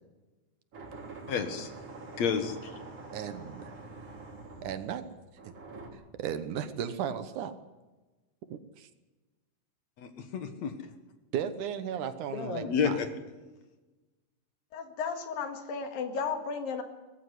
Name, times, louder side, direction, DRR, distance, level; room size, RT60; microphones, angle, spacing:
sound 1, 0.7-5.9, right 3 dB, 45° right, 3.9 m, -46 dB
voice 1, 1.3-1.7 2.2-2.7 10.0-10.7 12.6-13.1, left 6 dB, 55° left, 8 dB, 2.5 m, -30 dB
voice 2, 3.1-3.7 4.6-5.1 6.2-7.6 8.5-8.9 11.3-13.0, right 8 dB, 70° right, 11 dB, 2.4 m, -35 dB
voice 3, 12.3-12.7 14.7-16.8, left 5 dB, 85° left, 6 dB, 3.7 m, -34 dB
19.5 x 15.0 x 9.7 m, 1.2 s
omnidirectional pair, 4.0 m